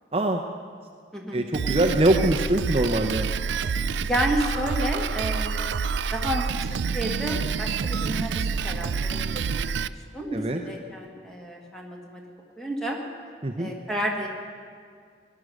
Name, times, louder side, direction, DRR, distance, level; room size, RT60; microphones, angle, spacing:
voice 1, 1.3-3.3 10.3-10.6 13.4-13.7, right 1 dB, 35° right, 3 dB, 0.7 m, -23 dB
Drum kit, 1.5-9.9, right 5 dB, 80° right, 0.4 m, -27 dB
voice 2, 4.0-6.5 6.9-9.6 10.1-12.2 12.6-13.0 13.6-14.3, equal, 5° left, -1 dB, 1.8 m, -31 dB
18.0 x 11.0 x 6.5 m, 2.1 s
head